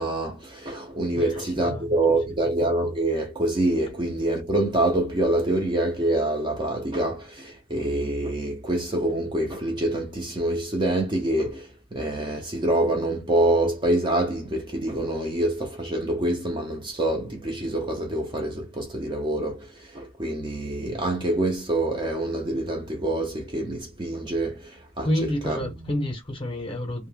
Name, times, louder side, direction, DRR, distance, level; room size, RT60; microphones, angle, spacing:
voice 1, 0.0-25.7, right 1 dB, 20° right, 0.4 m, -26 dB
voice 2, 1.1-1.8 25.0-27.1, left 1 dB, 25° left, 0.6 m, -29 dB
2.1 x 2.0 x 3.2 m
head